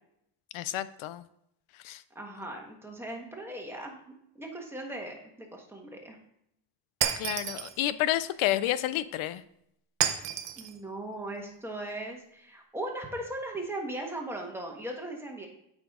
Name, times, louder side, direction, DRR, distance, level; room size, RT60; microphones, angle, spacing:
voice 1, 0.5-1.2 1.8-2.0 7.2-9.4, left 13 dB, 75° left, 15 dB, 0.6 m, -30 dB
voice 2, 2.1-4.0 4.3-6.2 10.6-15.5, right 1 dB, 5° right, 0 dB, 1.4 m, -38 dB
Shatter, 7.0-7.8 10.0-10.7, right 10 dB, 60° right, 0.8 m, -30 dB
8.7 x 5.1 x 3.7 m, 0.76 s
cardioid pair, 130°, 48 cm